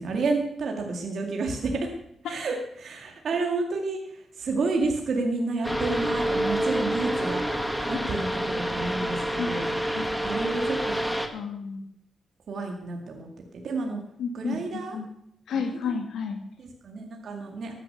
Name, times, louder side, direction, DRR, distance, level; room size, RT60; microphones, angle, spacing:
voice 1, 0.0-1.9 2.2-9.7 10.2-10.8 12.5-13.3 13.6-14.0 14.3-15.0 15.5-15.8 16.6-17.7, right 3 dB, 65° right, 2 dB, 2.2 m, -30 dB
sound 1, 5.6-11.3, equal, ahead, 1.8 m, -28 dB
voice 2, 11.3-11.8 14.2-15.1 15.5-16.4, left 5 dB, 90° left, 4 dB, 1.6 m, -31 dB
13.5 x 10.0 x 6.8 m, 0.76 s
cardioid pair, 85°, 0 cm